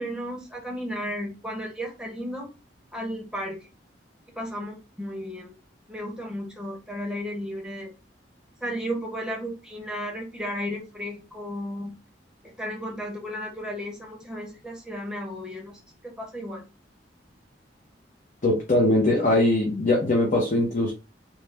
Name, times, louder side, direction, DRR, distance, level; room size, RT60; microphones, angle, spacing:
voice 1, 0.0-2.5 2.9-3.6 4.3-5.5 5.9-7.9 8.6-11.9 12.4-16.7, equal, 5° right, -1 dB, 0.8 m, -34 dB
voice 2, 18.4-20.9, left 1 dB, 45° left, -1 dB, 0.7 m, -21 dB
3.1 x 2.1 x 3.3 m, 0.30 s
head